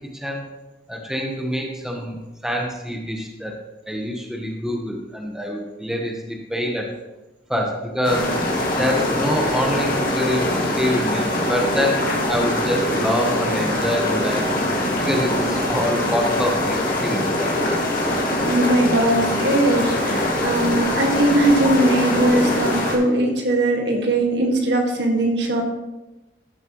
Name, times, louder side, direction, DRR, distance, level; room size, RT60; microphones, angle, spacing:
voice 1, 0.9-2.2 2.4-3.5 3.9-6.9 7.5-8.3 8.8-14.4 15.0-17.5, equal, 5° right, 0 dB, 1.0 m, -25 dB
sound 1, 8.0-23.0, left 1 dB, 50° left, 2.0 m, -22 dB
voice 2, 18.4-25.6, right 1 dB, 70° right, 1 dB, 1.8 m, -20 dB
13.5 x 7.5 x 3.0 m, 1.0 s
head